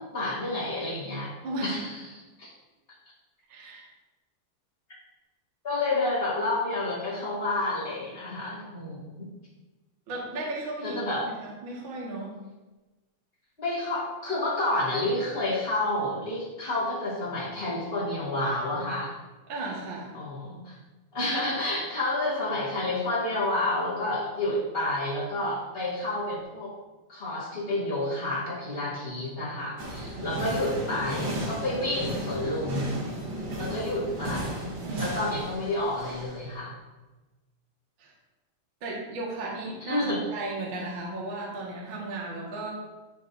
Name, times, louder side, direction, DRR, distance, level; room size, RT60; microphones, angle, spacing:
voice 1, 0.0-1.3 1.6-2.5 5.6-9.3 10.8-11.3 13.6-19.1 20.1-20.8 21.1-26.7 27.1-32.9 33.6-36.7 39.8-40.2, left 2 dB, 35° left, -9 dB, 0.8 m, -30 dB
voice 2, 1.4-1.8 3.5-3.9 10.1-12.3 19.5-20.2 34.8-35.2 38.0-38.1 38.8-42.7, right 2 dB, 80° right, -4 dB, 1.1 m, -35 dB
sound 1, 29.8-36.4, right 1 dB, 55° right, 2.1 m, -34 dB
12.0 x 5.0 x 2.7 m, 1.2 s
omnidirectional pair, 5.3 m